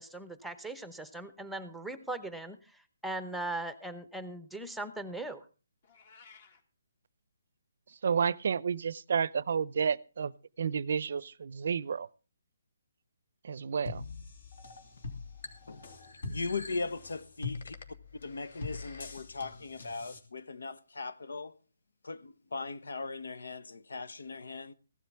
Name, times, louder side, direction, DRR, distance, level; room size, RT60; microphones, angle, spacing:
voice 1, 0.0-5.4, right 2 dB, ahead, 0.8 m, -39 dB
Meow, 5.8-6.6, left 5 dB, 35° left, 1.8 m, -56 dB
voice 2, 8.0-10.3 10.6-12.1 13.4-14.0, right 6 dB, 55° right, 0.5 m, -30 dB
sound 1, 13.9-20.2, left 3 dB, 60° left, 2.7 m, -43 dB
voice 3, 16.2-17.7 18.2-21.5 22.0-24.7, left 3 dB, 85° left, 1.0 m, -39 dB
16.0 x 12.0 x 3.5 m
hypercardioid pair, 165°, 0 cm